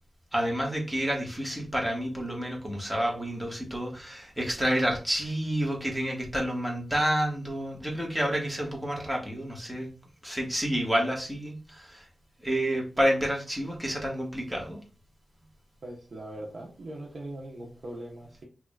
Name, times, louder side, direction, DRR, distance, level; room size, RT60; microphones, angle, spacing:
voice 1, 0.3-9.9 10.2-12.1 12.4-14.8, equal, 10° right, -1 dB, 1.6 m, -29 dB
voice 2, 15.8-18.4, right 1 dB, 65° right, -1 dB, 1.1 m, -40 dB
4.7 x 2.9 x 2.4 m, 0.36 s
cardioid pair, 55°, 0 cm